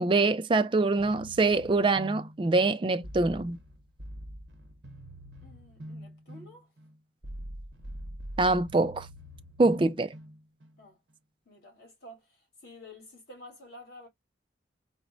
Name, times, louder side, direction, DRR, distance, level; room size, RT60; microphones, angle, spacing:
voice 1, 0.0-3.6 8.4-9.1 9.6-10.1, right 3 dB, 25° right, 0.4 m, -24 dB
sound 1, 1.0-10.8, equal, 85° right, 1.0 m, -44 dB
voice 2, 5.4-6.7 9.7-9.8 10.8-11.0 11.5-14.1, left 1 dB, 60° left, 2.4 m, -50 dB
4.2 x 2.1 x 2.6 m
head